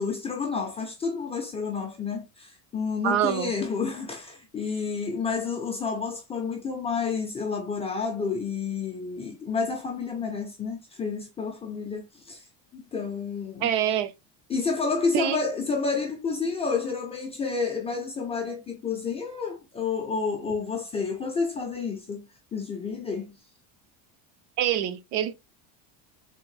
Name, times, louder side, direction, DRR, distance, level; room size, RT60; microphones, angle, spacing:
voice 1, 0.0-12.4 12.7-13.7 14.5-23.3, left 5 dB, 15° left, 0.3 m, -30 dB
voice 2, 3.0-3.5 13.6-14.1 15.1-15.4 24.6-25.3, right 10 dB, 75° right, 0.7 m, -25 dB
3.6 x 2.6 x 3.1 m
cardioid pair, 165°, 46 cm